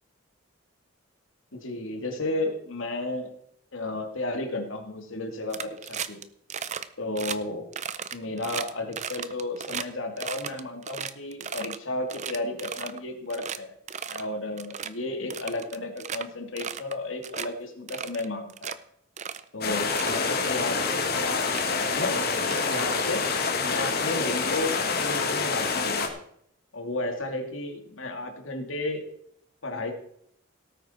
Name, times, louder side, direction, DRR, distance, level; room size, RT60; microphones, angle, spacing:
voice 1, 1.5-3.3 3.7-6.2 7.0-7.7 8.1-13.7 14.1-18.8 19.5-21.1 21.8-23.2 23.6-26.1 26.7-29.0 29.6-29.9, left 2 dB, 75° left, 4 dB, 2.4 m, -33 dB
sound 1, 5.5-6.2 6.5-6.9 7.2-7.4 7.7-9.9 10.2-11.8 12.1-13.0 13.3-13.6 13.9-14.3 14.6-14.9 15.3-16.2 16.6-17.0 17.2-17.5 17.9-18.8 19.2-19.4 19.8-20.2 21.0-21.1 21.4-21.7 22.4-23.3, right 7 dB, 35° right, 0.6 m, -35 dB
sound 2, 19.6-26.1, left 4 dB, 50° left, 2.1 m, -27 dB
18.0 x 9.1 x 4.4 m, 0.69 s
head